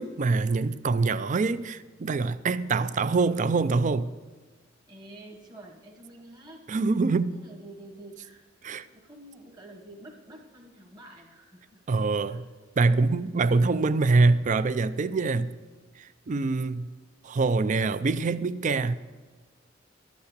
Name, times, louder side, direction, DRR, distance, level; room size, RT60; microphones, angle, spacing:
voice 1, 0.0-4.1 6.7-7.4 8.6-8.8 11.9-12.4 12.8-15.5 16.3-16.9 17.2-19.0, right 3 dB, 40° right, 0.4 m, -24 dB
voice 2, 4.9-6.6 7.3-8.4 8.7-11.8 12.3-12.4 13.4-13.6 15.4-15.9, right 1 dB, 20° right, 1.2 m, -48 dB
12.5 x 8.4 x 6.6 m
head